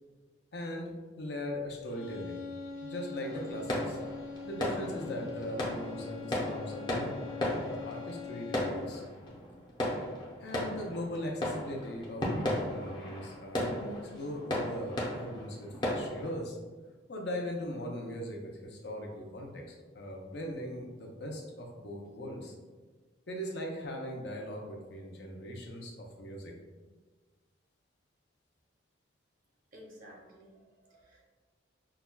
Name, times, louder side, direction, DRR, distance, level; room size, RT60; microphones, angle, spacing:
voice 1, 0.5-0.9 1.2-2.4 2.8-4.0 4.4-9.0 10.4-16.6 17.1-22.5 23.3-26.5, equal, 65° left, 0 dB, 0.6 m, -40 dB
sound 1, 1.8-9.0, left 5 dB, 50° left, 1.0 m, -43 dB
sound 2, 3.2-16.4, left 1 dB, 25° left, 0.6 m, -36 dB
voice 2, 29.7-31.2, equal, 45° right, -1 dB, 0.7 m, -54 dB
5.7 x 2.2 x 2.2 m, 1.4 s
head